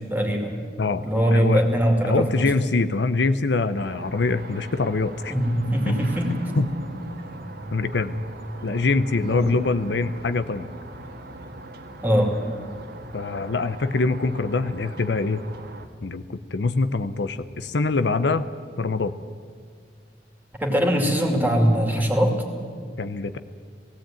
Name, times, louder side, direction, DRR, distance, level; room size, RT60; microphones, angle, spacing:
voice 1, 0.1-0.5 1.0-2.4 5.3-6.7 9.3-9.6 12.0-12.3 20.6-22.4, equal, 10° right, 2 dB, 2.6 m, -21 dB
voice 2, 1.3-1.6 2.0-5.3 5.9-6.0 6.6-6.7 7.7-8.2 8.6-10.7 13.1-15.4 16.0-18.5 18.8-19.1 23.0-23.4, left 3 dB, 75° left, 11 dB, 0.7 m, -24 dB
sound 1, 3.7-15.9, right 1 dB, 65° right, 1.6 m, -40 dB
17.0 x 17.0 x 8.9 m, 2.1 s
head